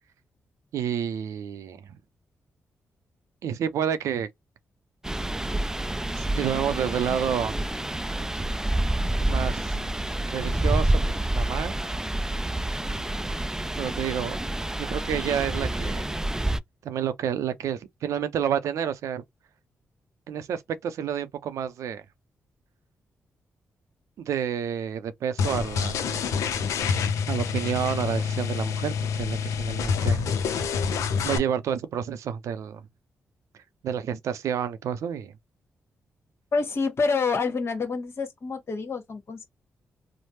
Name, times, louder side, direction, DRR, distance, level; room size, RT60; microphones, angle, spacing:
voice 1, 0.7-1.8 3.4-4.3 6.2-7.6 9.3-9.8 10.3-11.0 11.3-11.7 13.8-14.4 14.8-16.1 16.8-19.2 20.3-22.0 24.2-26.5 27.3-30.2 31.2-32.8 33.8-35.3, right 8 dB, 80° right, 0.5 m, -29 dB
sound 1, 5.0-16.6, right 1 dB, 10° right, 0.3 m, -28 dB
sound 2, 25.4-31.4, left 6 dB, 80° left, 0.5 m, -27 dB
voice 2, 36.5-39.5, left 4 dB, 55° left, 1.2 m, -27 dB
3.2 x 2.0 x 2.9 m
supercardioid pair, 50°, 5 cm